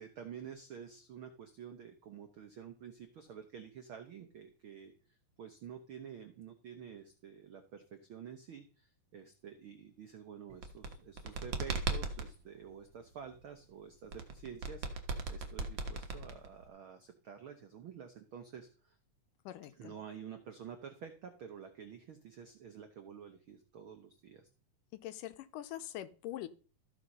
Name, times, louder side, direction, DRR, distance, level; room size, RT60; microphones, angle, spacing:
voice 1, 0.0-4.9 5.4-19.0 19.8-24.5, right 7 dB, 85° right, 7 dB, 1.1 m, -49 dB
sound 1, 10.5-12.3 14.1-16.7, right 4 dB, 55° right, 1.3 m, -37 dB
voice 2, 19.5-20.0 24.9-26.5, left 13 dB, 80° left, 12 dB, 2.3 m, -43 dB
14.0 x 6.0 x 5.4 m, 0.38 s
omnidirectional pair, 3.9 m